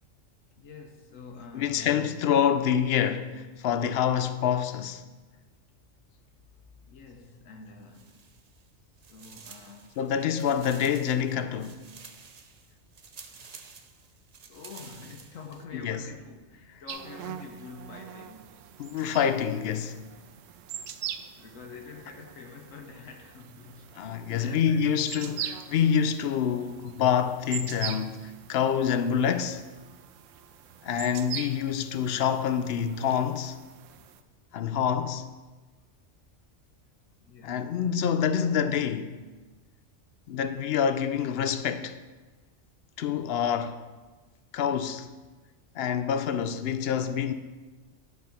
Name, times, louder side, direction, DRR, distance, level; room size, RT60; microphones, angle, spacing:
voice 1, 0.6-2.1 6.8-8.2 9.1-10.6 13.3-13.4 14.5-18.6 21.4-25.1 37.2-37.8, left 4 dB, 90° left, 1.2 m, -46 dB
voice 2, 1.5-5.0 10.0-11.8 15.8-16.0 18.8-20.0 24.0-29.6 30.8-33.6 34.5-35.3 37.4-39.2 40.3-42.0 43.0-43.8 44.5-45.1 45.8-47.3, left 8 dB, 65° left, 0.7 m, -27 dB
sound 1, 7.8-8.7 9.0-15.6, right 5 dB, 45° right, 0.5 m, -50 dB
sound 2, 16.9-34.2, right 9 dB, 75° right, 0.9 m, -42 dB
10.5 x 4.7 x 5.7 m
omnidirectional pair, 1.3 m